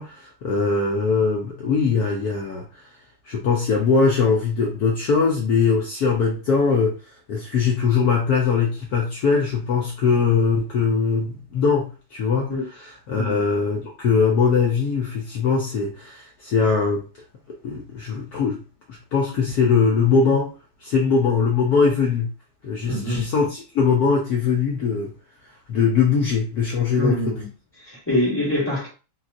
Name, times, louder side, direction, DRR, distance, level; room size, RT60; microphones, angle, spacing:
voice 1, 0.0-2.8 3.2-7.0 7.3-12.5 13.1-17.0 17.6-18.6 18.9-20.5 20.8-22.3 22.6-25.1 25.7-27.4, left 5 dB, 75° left, 0.9 m, -21 dB
voice 2, 22.8-23.3 27.0-27.5 27.8-28.9, left 1 dB, 10° left, 1.0 m, -24 dB
4.1 x 2.4 x 2.4 m
omnidirectional pair, 2.3 m